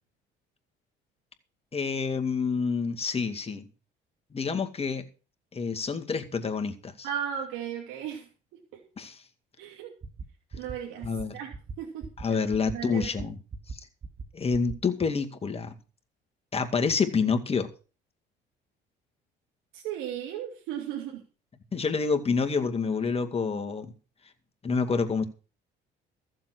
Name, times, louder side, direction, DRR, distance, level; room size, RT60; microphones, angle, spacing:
voice 1, 1.7-3.6 4.3-5.1 5.5-7.1 9.0-9.2 11.0-11.4 12.2-13.4 13.7-13.8 14.3-15.7 16.5-17.7 21.7-23.9 24.6-25.2, left 5 dB, 30° left, 6 dB, 2.2 m, -28 dB
voice 2, 7.0-8.3 8.7-8.8 9.6-9.9 10.5-11.5 11.8-12.4 12.7-13.3 19.7-21.2, right 9 dB, 80° right, 0 dB, 2.8 m, -36 dB
sound 1, 10.0-10.2 10.5-10.7 11.0-11.2 11.5-11.7 12.0-12.2 12.5-12.7 13.0-13.2 13.5-13.7 14.0-14.2 14.5-14.7, right 4 dB, 35° right, 2.3 m, -38 dB
14.5 x 7.5 x 6.3 m, 0.35 s
supercardioid pair, 85°, 20 cm